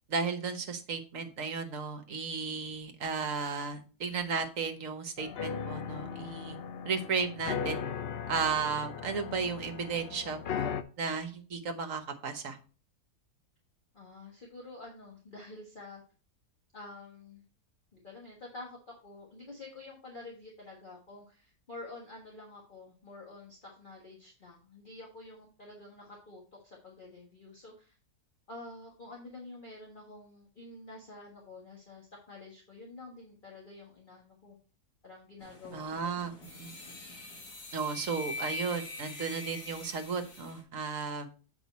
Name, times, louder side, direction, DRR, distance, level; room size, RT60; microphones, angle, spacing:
voice 1, 0.1-6.6 6.8-7.8 8.3-12.6 35.7-36.3 36.6-36.7 37.7-41.3, right 5 dB, 60° right, 7 dB, 1.4 m, -34 dB
sound 1, 5.2-10.8, left 7 dB, 65° left, 0.6 m, -37 dB
voice 2, 13.9-16.0 16.7-17.4 17.9-28.0 28.5-34.5 35.0-36.1, left 2 dB, 35° left, -2 dB, 1.6 m, -48 dB
sound 2, 35.4-40.6, left 3 dB, 85° left, 2.5 m, -43 dB
7.7 x 4.9 x 4.1 m, 0.37 s
omnidirectional pair, 1.7 m